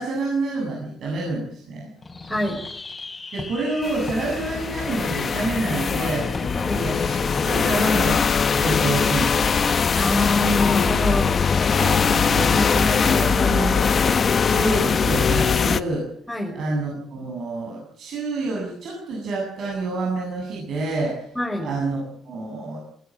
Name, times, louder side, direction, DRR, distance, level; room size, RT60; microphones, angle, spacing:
voice 1, 0.0-1.9 3.3-6.4 6.7-9.7 11.7-13.9 14.4-16.1 16.5-21.3 21.6-22.8, right 2 dB, 65° right, -1 dB, 7.8 m, -28 dB
Fireworks, 2.0-10.2, left 3 dB, 25° left, 5.9 m, -37 dB
voice 2, 2.3-2.6 6.5-6.8 9.9-11.4 12.5-12.7 16.3-16.5 21.4-21.7, left 1 dB, 5° left, -1 dB, 6.1 m, -24 dB
sound 1, 3.8-15.8, left 6 dB, 45° left, 1.2 m, -21 dB
19.5 x 18.0 x 9.0 m, 0.64 s
cardioid pair, 90°, 0 cm